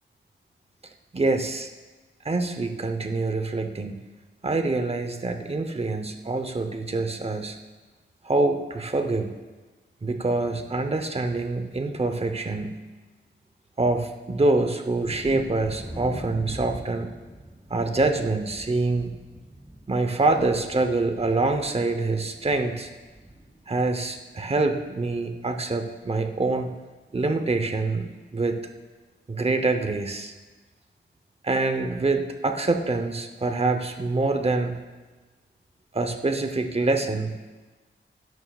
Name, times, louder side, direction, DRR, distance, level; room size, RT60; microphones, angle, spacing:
voice 1, 1.1-1.7 2.2-4.0 4.4-7.6 8.2-9.3 10.0-12.8 13.8-17.1 17.7-19.2 19.9-22.9 23.7-26.8 27.1-28.6 29.3-30.3 31.4-34.8 35.9-37.3, right 3 dB, 30° right, 6 dB, 0.8 m, -25 dB
Thunder, 15.0-24.5 24.7-25.4 25.8-25.9 26.3-26.5, right 1 dB, 5° right, 3.6 m, -42 dB
19.5 x 11.0 x 2.4 m, 1.2 s
wide cardioid pair, 135°, 20 cm